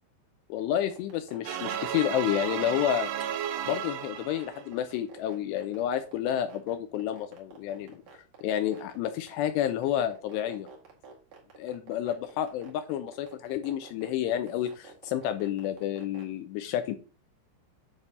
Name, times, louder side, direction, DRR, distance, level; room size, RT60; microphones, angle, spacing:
voice 1, 0.5-3.1 3.7-10.7 11.6-17.0, left 11 dB, 85° left, 8 dB, 2.4 m, -30 dB
sound 1, 0.6-16.2, right 6 dB, 50° right, 3.0 m, -49 dB
sound 2, 1.5-4.7, right 9 dB, 80° right, 2.5 m, -33 dB
9.7 x 3.4 x 5.3 m, 0.35 s
omnidirectional pair, 5.5 m